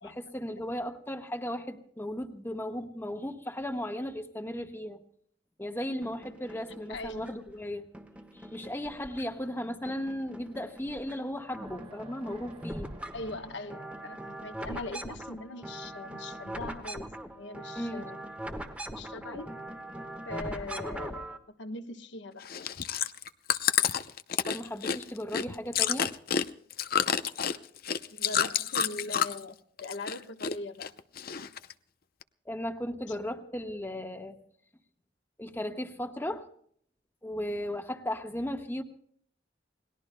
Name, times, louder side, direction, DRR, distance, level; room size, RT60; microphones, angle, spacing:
voice 1, 0.0-5.0 5.6-7.9 8.3-12.9 17.7-18.0 24.5-26.1 32.5-34.4 35.4-36.5 37.2-38.8, left 1 dB, 10° left, 1.3 m, -36 dB
sound 1, 6.0-7.5 7.9-9.5 9.9-11.2 11.4-21.4, right 1 dB, 5° right, 1.3 m, -42 dB
voice 2, 6.9-7.4 13.1-17.1 17.3-18.2 18.9-19.5 20.3-22.5 27.5-27.7 28.1-30.9 33.1-33.2, left 2 dB, 65° left, 1.2 m, -41 dB
sound 2, 11.6-14.5, right 2 dB, 30° right, 1.7 m, -52 dB
Chewing mastication, 22.4-29.5 29.8-30.5 30.8-31.7 32.2-32.3, left 8 dB, 50° left, 0.7 m, -29 dB
29.0 x 20.0 x 2.2 m
head